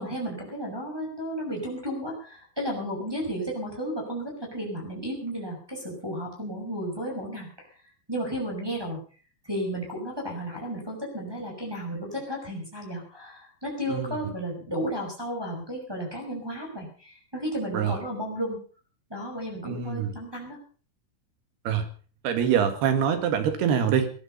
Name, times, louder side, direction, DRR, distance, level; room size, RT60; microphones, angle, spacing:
voice 1, 0.0-7.7 8.1-9.0 9.4-18.6 19.1-20.6, equal, 5° right, -2 dB, 5.9 m, -33 dB
voice 2, 19.6-20.1 21.7-21.9 22.2-24.1, right 8 dB, 70° right, 9 dB, 3.7 m, -24 dB
19.5 x 11.5 x 5.6 m, 0.41 s
omnidirectional pair, 4.8 m